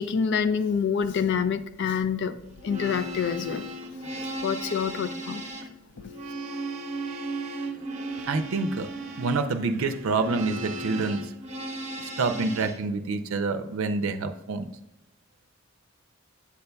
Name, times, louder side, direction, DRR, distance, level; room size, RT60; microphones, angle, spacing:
voice 1, 0.0-2.4 2.6-3.7 4.4-5.4, left 6 dB, 55° left, 12 dB, 0.4 m, -26 dB
sound 1, 2.5-12.8, right 1 dB, 35° right, 0.7 m, -36 dB
voice 2, 8.3-8.9 9.2-11.3 12.2-14.7, right 3 dB, 80° right, 7 dB, 0.5 m, -27 dB
8.4 x 6.8 x 2.2 m, 0.87 s
head